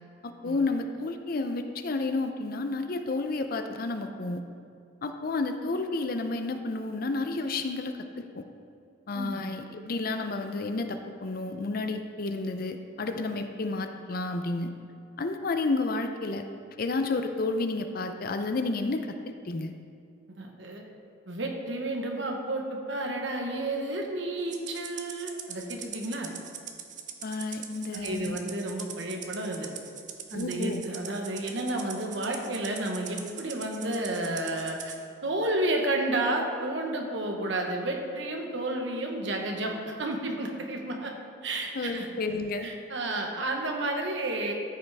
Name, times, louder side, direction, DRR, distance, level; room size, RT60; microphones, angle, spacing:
voice 1, 0.2-4.4 5.0-8.5 9.1-14.7 15.2-16.4 16.8-19.7 27.2-28.4 30.3-30.8 41.7-42.7, left 3 dB, 45° left, 7 dB, 0.5 m, -31 dB
voice 2, 20.3-20.8 21.3-26.3 27.9-29.7 30.3-34.9 35.2-41.1 41.4-42.1 42.6-44.5, right 1 dB, 65° right, 2 dB, 1.1 m, -31 dB
Rattle (instrument), 24.5-35.0, right 8 dB, 40° right, 0.6 m, -42 dB
13.5 x 5.6 x 3.5 m, 2.4 s
head